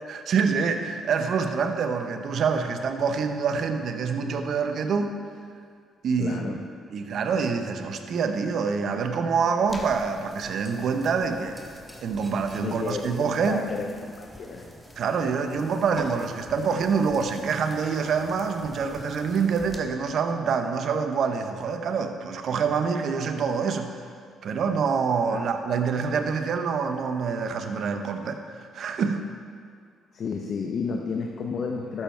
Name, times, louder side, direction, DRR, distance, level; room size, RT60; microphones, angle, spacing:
voice 1, 0.1-5.2 6.0-6.6 6.9-11.6 12.0-13.7 15.0-23.9 24.4-29.2, right 5 dB, 65° right, 6 dB, 0.9 m, -26 dB
voice 2, 6.2-6.6 12.6-14.7 25.2-25.5 30.1-32.0, left 5 dB, 60° left, 2 dB, 0.8 m, -32 dB
sound 1, 9.7-19.8, equal, ahead, 1.5 m, -45 dB
12.5 x 7.3 x 4.5 m, 2.2 s
supercardioid pair, 65°, 0 cm